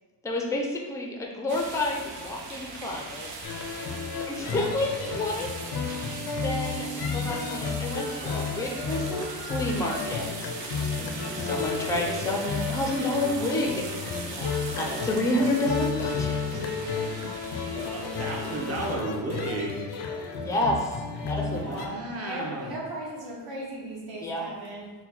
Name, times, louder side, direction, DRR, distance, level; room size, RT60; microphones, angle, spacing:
voice 1, 0.2-3.3 4.3-5.5 5.8-6.0 6.3-10.6 11.2-13.8 14.2-16.4 20.4-21.8 24.2-24.4, left 1 dB, 10° left, 0 dB, 0.5 m, -30 dB
sound 1, 1.5-19.0, right 4 dB, 85° right, 0.7 m, -40 dB
sound 2, 3.4-21.9, left 5 dB, 65° left, 0.6 m, -32 dB
voice 2, 17.6-19.8 21.5-22.7, right 2 dB, 35° right, -1 dB, 0.9 m, -33 dB
voice 3, 21.5-24.9, right 1 dB, 60° right, -5 dB, 1.5 m, -37 dB
4.4 x 2.2 x 4.2 m, 1.3 s
cardioid pair, 130°, 43 cm